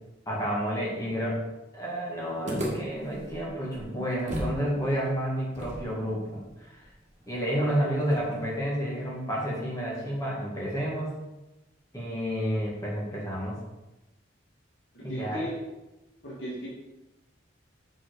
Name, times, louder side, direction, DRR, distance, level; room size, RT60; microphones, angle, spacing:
voice 1, 0.3-1.4 1.7-6.8 7.3-11.2 11.9-13.6 15.0-15.4, equal, 15° left, -5 dB, 1.9 m, -30 dB
sound 1, 2.5-4.6 4.9-5.0 5.5-8.7, equal, 35° right, 1.7 m, -37 dB
voice 2, 14.9-15.5 16.2-16.7, equal, 65° left, -6 dB, 2.1 m, -36 dB
6.2 x 5.9 x 4.9 m, 1.0 s
head